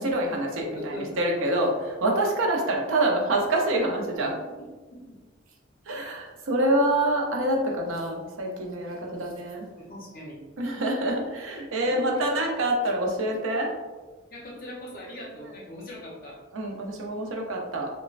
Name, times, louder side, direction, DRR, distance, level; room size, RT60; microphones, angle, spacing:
voice 1, 0.0-1.7 2.0-4.3 5.9-9.7 10.6-13.7 16.5-17.9, right 1 dB, 85° right, 1 dB, 0.5 m, -26 dB
voice 2, 0.7-1.6 4.6-4.7 5.9-6.1 9.8-10.4 11.8-12.3 14.3-16.4, equal, 45° left, -3 dB, 0.7 m, -40 dB
3.0 x 2.1 x 2.4 m, 1.3 s
head